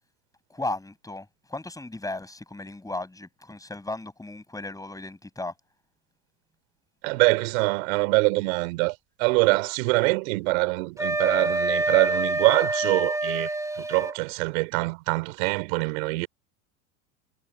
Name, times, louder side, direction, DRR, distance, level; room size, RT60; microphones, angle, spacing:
voice 1, 0.5-5.5, left 2 dB, 10° left, 8.0 m, -35 dB
voice 2, 7.0-16.3, right 26 dB, 70° right, 4.1 m, -24 dB
Wind instrument woodwind instrument, 11.0-14.2, right 2 dB, 5° right, 3.5 m, -26 dB
hypercardioid pair, 100°, 42 cm